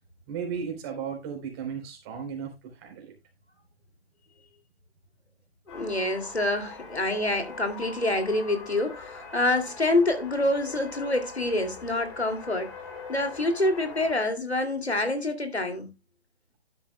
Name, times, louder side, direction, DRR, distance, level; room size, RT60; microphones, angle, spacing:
voice 1, 0.3-3.1, right 7 dB, 25° right, 3.6 m, -35 dB
voice 2, 5.7-12.7 13.1-15.9, left 2 dB, 90° left, 2.6 m, -26 dB
sound 1, 5.7-14.1, left 4 dB, 30° left, 2.8 m, -43 dB
12.0 x 10.0 x 2.2 m
figure-of-eight pair, 140°, 31 cm